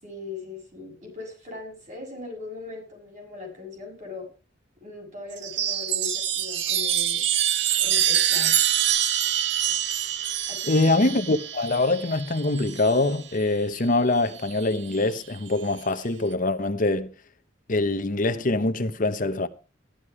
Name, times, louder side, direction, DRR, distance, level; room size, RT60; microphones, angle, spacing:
voice 1, 0.0-4.3 4.8-7.2 7.8-8.6 10.5-10.9, left 3 dB, 40° right, 6.9 m, -39 dB
Chime, 5.3-13.2 14.4-15.0, right 10 dB, 60° right, 0.9 m, -25 dB
voice 2, 10.7-17.1 17.7-19.5, left 2 dB, 45° left, 0.9 m, -24 dB
14.0 x 12.0 x 4.8 m
head